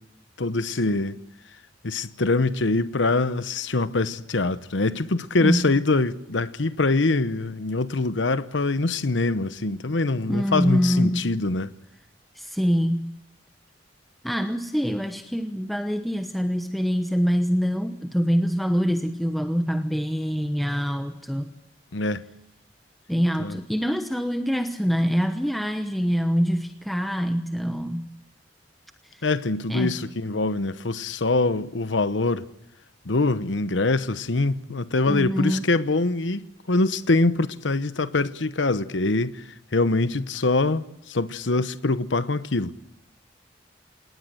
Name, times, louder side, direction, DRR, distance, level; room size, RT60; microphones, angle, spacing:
voice 1, 0.4-1.2 1.8-11.7 21.9-22.2 23.4-23.6 29.2-32.4 33.0-42.7, left 3 dB, 85° left, 1.0 m, -24 dB
voice 2, 5.4-5.7 10.3-11.3 12.3-13.1 14.2-21.5 23.1-28.1 29.1-29.3 29.7-30.0 35.1-35.7, equal, ahead, 1.1 m, -25 dB
28.0 x 19.0 x 7.8 m
head